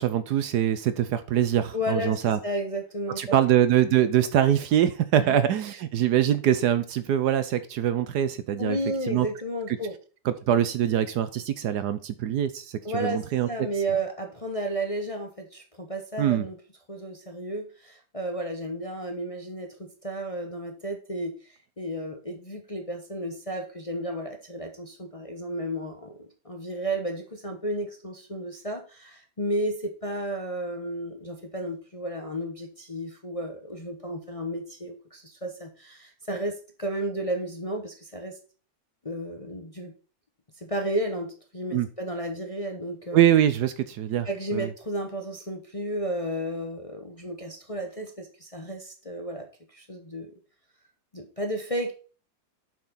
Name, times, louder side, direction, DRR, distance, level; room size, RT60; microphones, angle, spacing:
voice 1, 0.0-2.4 3.2-8.8 9.1-9.3 10.3-12.6 13.0-13.5 16.2-16.4 41.7-41.9 43.1-44.3 44.5-44.7, right 10 dB, 70° right, 12 dB, 1.1 m, -23 dB
voice 2, 1.7-3.4 5.2-5.4 8.6-9.9 12.8-16.6 16.9-38.4 39.0-39.9 40.6-43.2 44.2-50.3 51.1-51.9, right 1 dB, 25° left, 3 dB, 0.8 m, -33 dB
7.3 x 6.0 x 4.1 m, 0.37 s
omnidirectional pair, 2.0 m